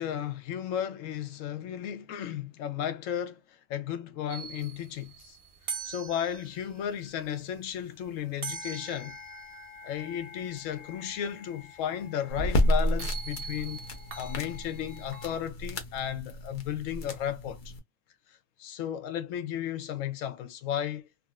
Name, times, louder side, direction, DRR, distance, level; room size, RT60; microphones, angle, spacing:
voice 1, 0.0-5.4 5.8-9.2 9.8-13.8 14.2-17.7 18.6-21.1, left 10 dB, 75° left, 0.9 m, -34 dB
sound 1, 4.3-15.4, right 4 dB, 55° right, 0.8 m, -43 dB
sound 2, 12.3-17.8, equal, 45° left, 0.7 m, -31 dB
3.7 x 2.0 x 2.3 m
omnidirectional pair, 1.4 m